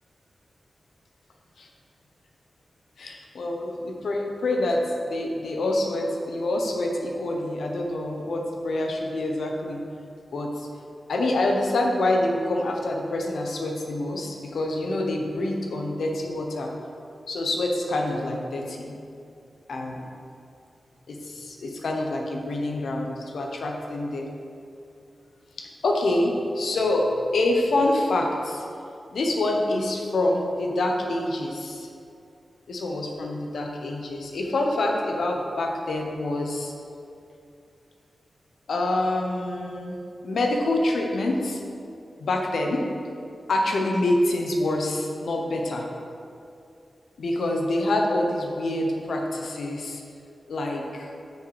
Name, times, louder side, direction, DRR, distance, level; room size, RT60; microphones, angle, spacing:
voice 1, 3.0-9.8 10.3-10.7 11.1-16.7 17.3-19.0 19.7-20.1 21.1-24.3 25.6-28.6 29.1-31.9 32.7-36.7 38.7-40.0 40.2-41.6 42.2-42.9 43.5-45.9 47.2-50.0 50.5-51.1, left 1 dB, 90° left, 1 dB, 0.8 m, -26 dB
6.3 x 5.0 x 4.8 m, 2.5 s
wide cardioid pair, 100°, 0 cm